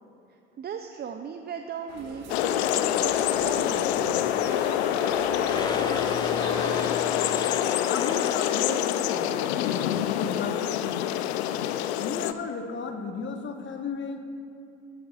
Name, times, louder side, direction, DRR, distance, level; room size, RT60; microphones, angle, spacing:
voice 1, 0.3-4.3, right 7 dB, 30° right, 6 dB, 0.6 m, -38 dB
sound 1, 1.9-6.9, right 2 dB, 50° right, 2.5 m, -39 dB
sound 2, 2.3-12.3, left 11 dB, 70° left, 0.6 m, -26 dB
sound 3, 5.5-9.6, left 3 dB, 10° left, 0.7 m, -37 dB
voice 2, 7.9-10.8 12.0-14.3, left 4 dB, 35° left, 5 dB, 1.2 m, -34 dB
18.0 x 13.0 x 2.5 m, 2.6 s
hypercardioid pair, 65°, 33 cm